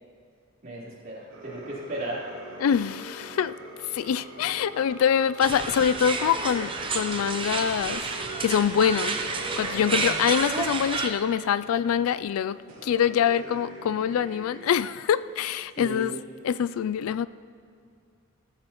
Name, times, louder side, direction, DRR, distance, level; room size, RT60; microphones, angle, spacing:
voice 1, 0.6-2.2 9.8-10.1 15.8-16.2, right 1 dB, 40° right, 3.6 m, -36 dB
sound 1, 1.3-10.4 10.8-11.1 12.1-12.2 12.7-14.7, right 1 dB, 70° right, 3.1 m, -42 dB
voice 2, 2.6-3.6 3.9-8.1 8.4-9.2 9.6-16.1 16.4-17.3, left 8 dB, 85° left, 0.3 m, -25 dB
sound 2, 5.4-11.1, right 4 dB, 25° right, 0.7 m, -30 dB
17.0 x 14.0 x 3.1 m
head